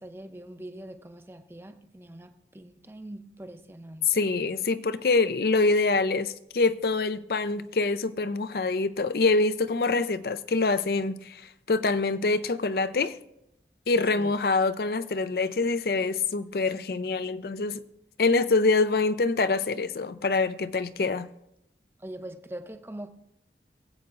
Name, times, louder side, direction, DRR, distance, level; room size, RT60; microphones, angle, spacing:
voice 1, 0.0-4.1 14.1-14.3 22.0-23.1, right 1 dB, 15° right, 0.6 m, -42 dB
voice 2, 4.1-11.4 11.7-13.2 13.9-17.8 18.2-21.3, left 3 dB, 60° left, 0.5 m, -25 dB
22.0 x 8.2 x 2.5 m
head